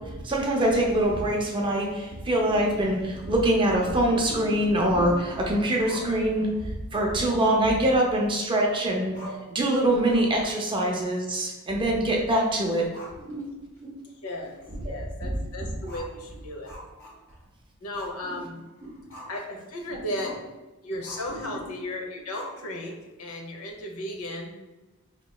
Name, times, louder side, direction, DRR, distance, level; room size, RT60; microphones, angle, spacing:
voice 1, 0.0-9.1 9.5-12.9 13.2-13.5 13.8-14.0 14.8-14.9 15.2-15.4 18.3-18.4 18.8-18.9 19.9-20.0 21.3-21.6, right 1 dB, 25° right, -1 dB, 0.5 m, -24 dB
Growling, 5.8-6.6 7.4-8.6 8.9-9.0 9.1-9.6 9.9-10.4 10.7-10.8 12.2-13.4 13.8-13.9 14.4-14.5 15.8-17.5 17.9-18.2 18.5-19.5 20.2-20.5 21.0-21.4 22.3-22.9, equal, 60° left, 1.2 m, -44 dB
voice 2, 14.0-14.6 14.8-16.7 17.8-18.6 19.3-20.4 20.8-24.6, left 1 dB, 85° left, 2 dB, 0.7 m, -35 dB
4.5 x 2.9 x 2.3 m, 1.1 s
head